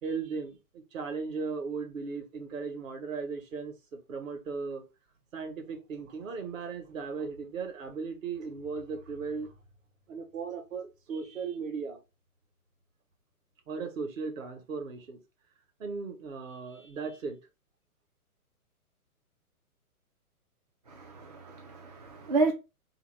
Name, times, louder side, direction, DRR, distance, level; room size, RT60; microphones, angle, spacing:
voice 1, 0.0-4.8 5.3-9.5 10.1-12.0 13.7-15.2 15.8-17.4, right 5 dB, 60° right, 1.2 m, -37 dB
voice 2, 20.9-22.5, right 3 dB, 30° right, 0.4 m, -30 dB
3.4 x 2.8 x 3.1 m
figure-of-eight pair, 125°, 45 cm